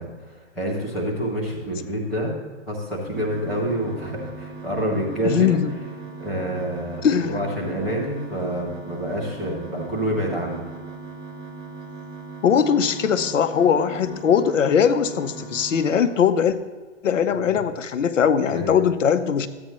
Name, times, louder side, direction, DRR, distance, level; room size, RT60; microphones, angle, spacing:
voice 1, 0.0-2.3 2.7-5.5 6.2-10.6 17.5-17.6 18.5-18.8, equal, ahead, -10 dB, 0.4 m, -27 dB
sound 1, 3.2-16.0, right 4 dB, 30° right, 2.1 m, -38 dB
voice 2, 5.2-5.7 7.0-7.4 12.4-16.6 17.0-19.5, left 7 dB, 80° left, 10 dB, 0.9 m, -20 dB
13.0 x 8.7 x 3.1 m, 1.4 s
hypercardioid pair, 150°, 37 cm